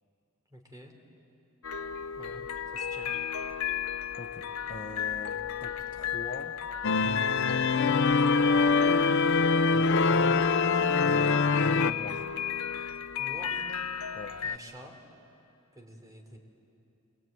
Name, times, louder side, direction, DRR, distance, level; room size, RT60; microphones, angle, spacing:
voice 1, 0.5-0.9 2.1-2.5 2.7-3.1 13.2-13.7 14.4-14.9 15.7-16.4, equal, 15° right, 2 dB, 3.3 m, -47 dB
sound 1, 1.6-14.6, left 8 dB, 85° left, 0.7 m, -35 dB
voice 2, 4.2-6.6 7.4-7.7 9.7-10.5 11.0-12.3 14.1-14.4, left 3 dB, 40° left, 5 dB, 1.0 m, -42 dB
sound 2, 6.8-11.9, left 4 dB, 60° left, 0.6 m, -24 dB
26.0 x 22.0 x 9.2 m, 2.7 s
head